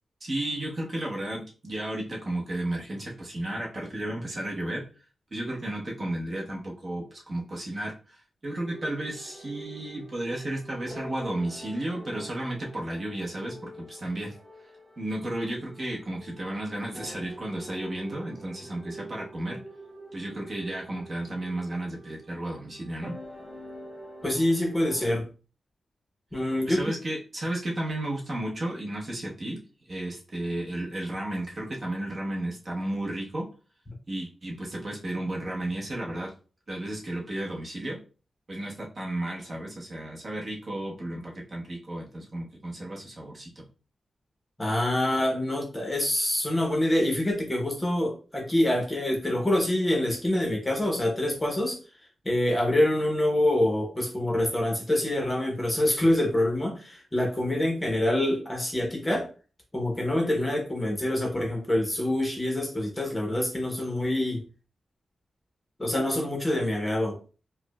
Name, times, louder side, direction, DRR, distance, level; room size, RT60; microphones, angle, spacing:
voice 1, 0.2-4.8 5.3-14.3 15.0-19.6 20.1-23.2 26.7-29.6 29.9-33.5 34.1-36.3 36.7-38.0 38.5-43.7, right 1 dB, 35° right, -2 dB, 0.9 m, -33 dB
sound 1, 8.6-25.1, equal, 5° right, 1.1 m, -46 dB
voice 2, 24.2-25.3 26.3-26.8 44.6-51.8 52.2-59.3 59.7-64.4 65.8-67.2, left 1 dB, 15° left, 0 dB, 0.8 m, -26 dB
4.6 x 2.1 x 2.3 m, 0.36 s
wide cardioid pair, 160°, 0 cm